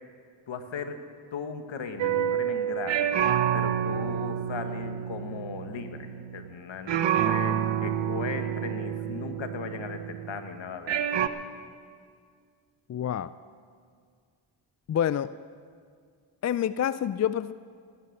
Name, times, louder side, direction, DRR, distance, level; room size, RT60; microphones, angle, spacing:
voice 1, 0.5-1.0 1.3-3.1 3.5-6.1 6.3-11.0, left 5 dB, 65° left, 7 dB, 1.5 m, -37 dB
sound 1, 2.0-6.6 6.9-10.4 10.9-11.3, right 10 dB, 60° right, 0.9 m, -28 dB
voice 2, 12.9-13.3 14.9-15.3 16.4-17.5, left 10 dB, 35° left, 16 dB, 0.4 m, -27 dB
18.0 x 9.9 x 6.5 m, 2.1 s
supercardioid pair, 50°, 49 cm